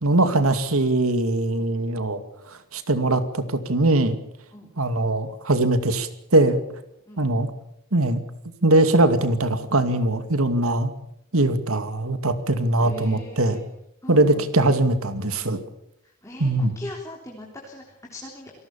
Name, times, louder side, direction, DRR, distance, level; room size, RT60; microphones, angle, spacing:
voice 1, 0.0-2.2 2.7-4.2 4.8-6.6 7.2-7.5 7.9-8.2 8.6-10.9 11.3-13.6 14.1-15.6 16.4-16.7, right 2 dB, 80° right, 10 dB, 2.4 m, -21 dB
voice 2, 12.8-13.6 14.0-14.8 16.0-18.5, left 1 dB, 15° left, -1 dB, 3.6 m, -40 dB
28.0 x 19.0 x 7.1 m, 0.77 s
head